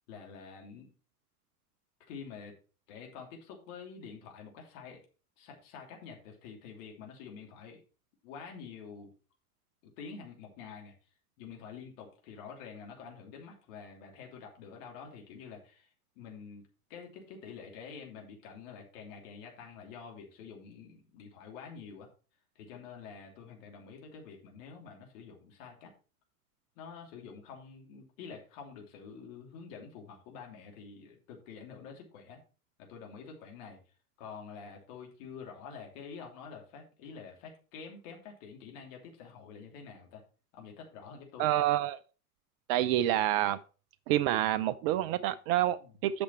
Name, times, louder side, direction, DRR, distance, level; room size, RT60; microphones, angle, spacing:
voice 1, 0.1-0.9 2.1-2.6 2.9-5.0 5.4-7.8 8.2-9.1 9.8-10.9 11.4-16.6 16.9-22.1 22.5-25.9 26.8-32.4 32.8-33.8 34.2-40.2 40.5-41.7 45.8-45.9, left 6 dB, 55° left, 0 dB, 3.0 m, -48 dB
voice 2, 41.4-42.0 42.7-43.6 44.1-45.8 46.0-46.2, right 13 dB, 35° right, 15 dB, 0.5 m, -27 dB
8.6 x 6.1 x 4.4 m, 0.35 s
figure-of-eight pair, 90°, 46 cm